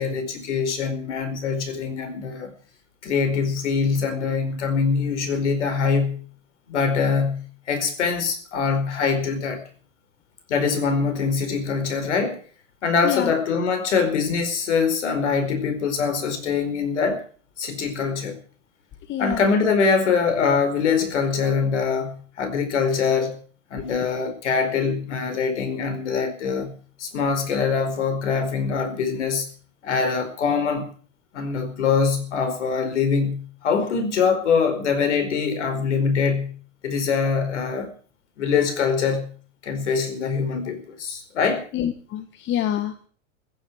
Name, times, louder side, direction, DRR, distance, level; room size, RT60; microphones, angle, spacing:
voice 1, 0.0-2.5 3.0-6.2 6.7-9.6 10.5-12.4 12.8-17.2 17.6-18.4 19.2-23.4 23.7-26.7 27.0-29.5 29.8-30.9 31.3-36.5 36.8-37.9 38.4-39.3 39.6-41.7, left 5 dB, 65° left, 4.8 m, -23 dB
voice 2, 19.1-19.4 41.7-43.1, left 11 dB, 30° left, 1.7 m, -26 dB
15.5 x 9.9 x 9.5 m
figure-of-eight pair, 95°, 38 cm